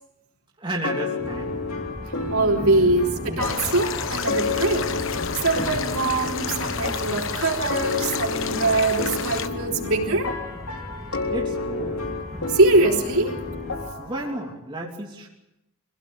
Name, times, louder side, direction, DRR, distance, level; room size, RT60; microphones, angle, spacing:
voice 1, 0.6-1.5 11.2-12.0 14.0-15.3, right 1 dB, 20° right, -1 dB, 3.0 m, -32 dB
sound 1, 0.8-14.5, left 3 dB, 80° left, 3.4 m, -31 dB
sound 2, 1.2-13.9, left 1 dB, ahead, 2.7 m, -37 dB
voice 2, 2.3-4.9 5.4-10.3 12.5-13.4, right 2 dB, 70° right, 0 dB, 4.3 m, -22 dB
sound 3, 3.4-9.5, left 6 dB, 60° left, 1.2 m, -30 dB
25.0 x 17.0 x 9.1 m, 0.91 s
head